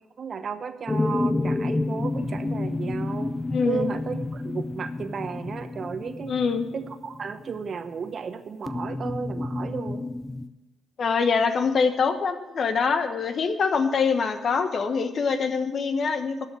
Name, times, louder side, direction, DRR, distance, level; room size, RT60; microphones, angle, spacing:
voice 1, 0.2-3.3 3.6-6.4 6.7-10.1, right 6 dB, 55° right, 10 dB, 0.9 m, -34 dB
sound 1, 0.9-7.7 8.7-10.5, left 2 dB, 25° left, 0.7 m, -29 dB
voice 2, 3.5-3.9 6.3-6.7 11.0-16.5, left 5 dB, 55° left, 9 dB, 1.1 m, -24 dB
12.0 x 5.8 x 8.3 m, 1.0 s
hypercardioid pair, 45°, 0 cm